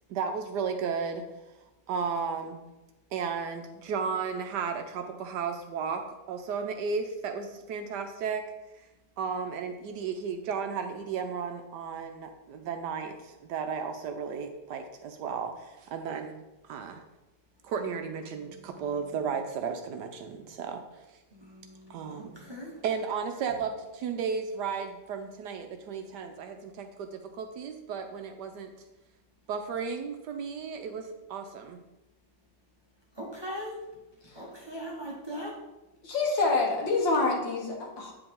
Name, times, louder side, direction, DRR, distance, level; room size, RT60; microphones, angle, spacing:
voice 1, 0.1-1.2 1.9-2.6 3.1-8.4 9.2-17.0 17.6-21.0 21.9-22.3 22.8-28.7 29.5-31.8, right 6 dB, 75° right, 6 dB, 1.1 m, -34 dB
voice 2, 21.3-22.7 33.2-33.7 34.4-35.5, equal, 15° right, -4 dB, 1.1 m, -40 dB
voice 3, 36.0-38.1, left 3 dB, 75° left, -1 dB, 2.1 m, -26 dB
8.7 x 4.9 x 3.7 m, 1.0 s
omnidirectional pair, 2.0 m